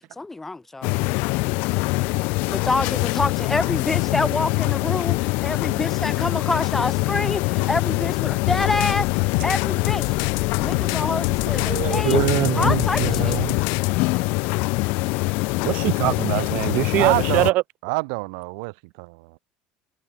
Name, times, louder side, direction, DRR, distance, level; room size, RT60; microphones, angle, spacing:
voice 1, 0.2-0.9 2.5-9.1 9.4-10.2 10.6-12.2 12.5-13.4, left 3 dB, 10° left, 4.7 m, -27 dB
sound 1, 0.8-17.5, left 27 dB, 70° left, 3.6 m, -24 dB
sound 2, 8.5-13.9, left 34 dB, 85° left, 1.1 m, -29 dB
voice 2, 11.5-13.6 15.6-17.6, right 18 dB, 55° right, 1.3 m, -23 dB
voice 3, 17.0-17.5 17.8-19.4, right 33 dB, 85° right, 2.6 m, -27 dB
cardioid pair, 155°, 3 cm